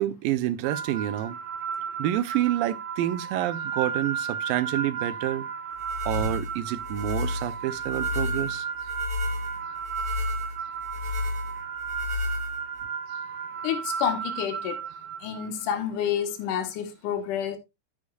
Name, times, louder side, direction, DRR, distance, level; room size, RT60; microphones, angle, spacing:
voice 1, 0.0-1.4 2.0-5.4 6.1-8.7, right 13 dB, 90° right, 2.4 m, -28 dB
sound 1, 0.6-15.8, right 7 dB, 60° right, 1.5 m, -34 dB
sound 2, 5.8-12.8, left 3 dB, 10° right, 4.1 m, -32 dB
voice 2, 13.6-14.8 15.2-17.6, left 9 dB, 70° left, 2.8 m, -29 dB
9.9 x 9.5 x 2.4 m
omnidirectional pair, 4.0 m